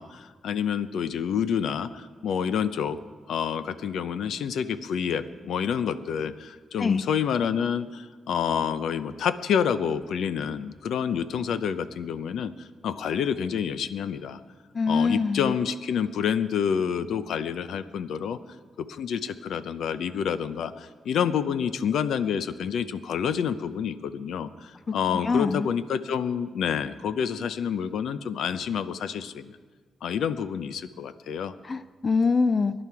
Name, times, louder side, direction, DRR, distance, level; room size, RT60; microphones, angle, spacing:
voice 1, 0.0-3.0 3.3-14.4 14.9-18.4 18.8-29.5 30.0-31.5, left 7 dB, 75° left, 12 dB, 0.7 m, -28 dB
voice 2, 14.7-15.5 25.1-25.7 31.6-32.7, left 4 dB, 30° left, 13 dB, 0.4 m, -24 dB
23.0 x 11.0 x 4.8 m, 1.5 s
wide cardioid pair, 145°, 0 cm